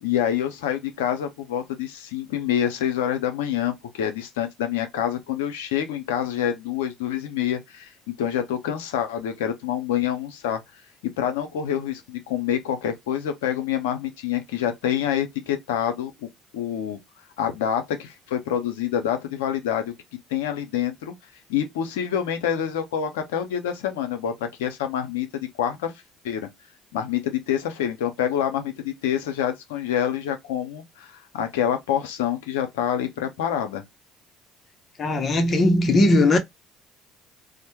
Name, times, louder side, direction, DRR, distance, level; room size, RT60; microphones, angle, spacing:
voice 1, 0.0-10.6 11.2-16.3 16.5-17.0 17.4-19.9 20.3-21.1 21.5-25.9 26.2-26.5 26.9-33.8, left 9 dB, 85° left, 0.5 m, -27 dB
voice 2, 35.0-36.4, left 1 dB, 45° left, 0.7 m, -18 dB
2.1 x 2.1 x 2.8 m
hypercardioid pair, 65°, 0 cm